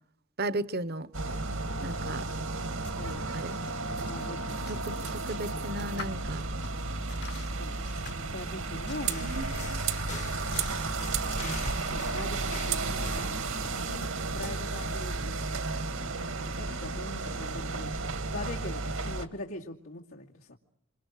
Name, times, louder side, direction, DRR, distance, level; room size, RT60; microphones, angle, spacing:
voice 1, 0.4-1.1 1.8-2.3 3.3-3.6 4.7-6.5 9.2-9.8, right 2 dB, 50° right, 1.0 m, -35 dB
sound 1, 1.1-19.3, right 3 dB, 80° right, 2.1 m, -33 dB
sound 2, 2.3-13.1, left 3 dB, 50° left, 1.3 m, -47 dB
voice 2, 4.1-4.9 7.6-7.8 8.3-9.7 11.4-15.6 16.0-18.0 18.3-20.6, left 2 dB, 90° left, 2.5 m, -42 dB
sound 3, 9.1-14.1, left 5 dB, 35° left, 1.0 m, -45 dB
27.5 x 27.0 x 6.5 m
head